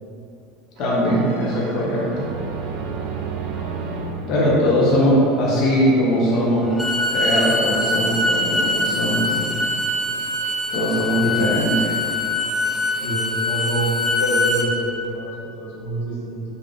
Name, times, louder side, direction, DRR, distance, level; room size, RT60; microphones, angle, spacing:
voice 1, 0.8-2.2 4.3-6.7 7.1-9.5 10.7-11.9, equal, 50° left, -5 dB, 0.6 m, -20 dB
sound 1, 0.8-5.5, right 5 dB, 65° right, 0.3 m, -32 dB
Bowed string instrument, 6.6-14.7, left 1 dB, ahead, 0.5 m, -23 dB
voice 2, 13.0-16.4, right 1 dB, 85° left, -6 dB, 0.8 m, -26 dB
3.5 x 2.4 x 3.3 m, 2.9 s
supercardioid pair, 115°, 0 cm